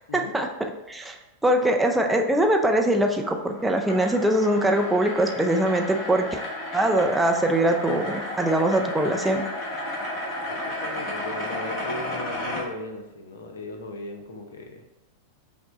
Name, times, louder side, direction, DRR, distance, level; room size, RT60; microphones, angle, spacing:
voice 1, 0.1-6.4 6.7-9.4, right 1 dB, 5° right, 2 dB, 0.4 m, -22 dB
sound 1, 3.2-12.6, left 1 dB, 35° left, 1.3 m, -33 dB
voice 2, 10.5-14.8, left 2 dB, 65° left, 4 dB, 0.6 m, -37 dB
5.8 x 2.1 x 3.9 m, 0.94 s
figure-of-eight pair, 90°, 0 cm